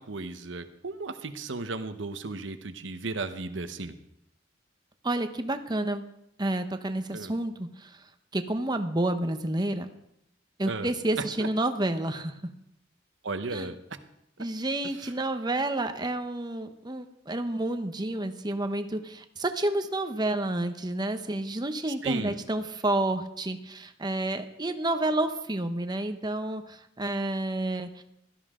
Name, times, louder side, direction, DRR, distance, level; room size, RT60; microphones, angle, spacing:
voice 1, 0.0-3.9 7.1-7.3 10.6-10.9 11.2-11.5 13.2-13.8 14.9-15.1 22.0-22.4, right 3 dB, 75° right, 9 dB, 1.0 m, -35 dB
voice 2, 5.0-6.0 6.4-8.0 8.3-9.9 10.6-12.4 13.5-13.7 14.4-28.0, right 1 dB, 20° right, 8 dB, 0.9 m, -30 dB
16.5 x 13.0 x 3.7 m, 0.80 s
head